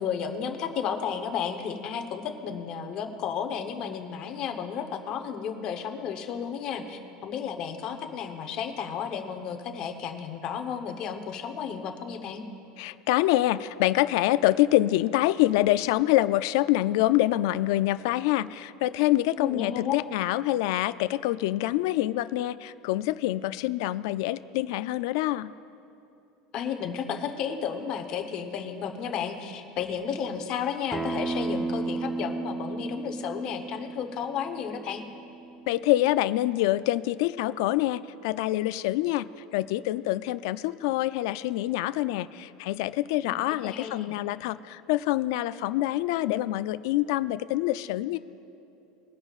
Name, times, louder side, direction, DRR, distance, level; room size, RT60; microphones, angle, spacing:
voice 1, 0.0-12.4 19.4-20.0 26.5-35.0 43.2-44.1, left 7 dB, 35° left, 6 dB, 0.9 m, -33 dB
voice 2, 12.8-25.5 35.7-48.2, left 15 dB, 65° left, 14 dB, 0.3 m, -26 dB
Acoustic guitar, 30.9-36.1, right 3 dB, 5° right, 0.4 m, -34 dB
21.5 x 10.5 x 2.4 m, 2.7 s
cardioid pair, 170°, 2 cm